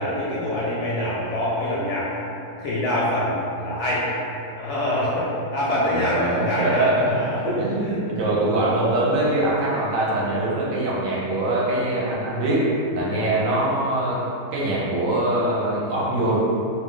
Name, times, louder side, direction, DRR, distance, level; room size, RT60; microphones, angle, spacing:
voice 1, 0.0-2.1 2.6-4.1 4.5-5.3 5.5-8.0 13.1-13.3, left 1 dB, 65° left, -7 dB, 0.7 m, -25 dB
voice 2, 5.8-14.2 14.5-16.4, right 1 dB, 70° right, -6 dB, 0.9 m, -23 dB
2.5 x 2.1 x 3.6 m, 2.7 s
omnidirectional pair, 1.6 m